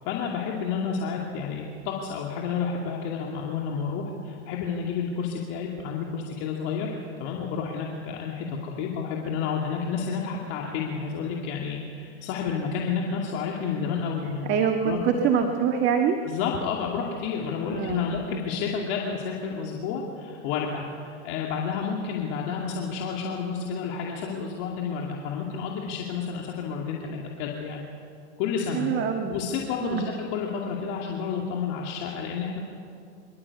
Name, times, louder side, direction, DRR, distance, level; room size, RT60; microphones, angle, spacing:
voice 1, 0.1-14.6 14.8-15.0 16.2-27.8 28.4-28.9 29.3-30.0 30.3-32.6, left 6 dB, 50° left, -1 dB, 2.6 m, -30 dB
voice 2, 14.5-16.2 17.7-18.0 28.7-29.3 29.8-30.1, right 7 dB, 35° right, 4 dB, 1.7 m, -24 dB
26.0 x 12.5 x 8.4 m, 2.4 s
hypercardioid pair, 120°, 34 cm